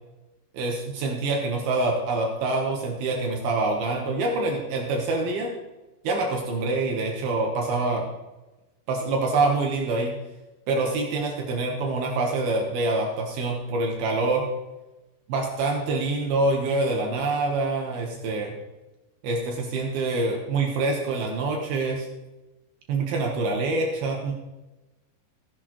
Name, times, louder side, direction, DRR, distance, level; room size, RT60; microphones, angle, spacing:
voice 1, 0.5-5.5 6.0-8.1 8.9-10.1 10.7-14.5 15.3-18.5 19.2-22.1 22.9-24.3, right 3 dB, 65° right, 1 dB, 2.7 m, -26 dB
14.0 x 10.5 x 3.1 m, 1.1 s
omnidirectional pair, 5.4 m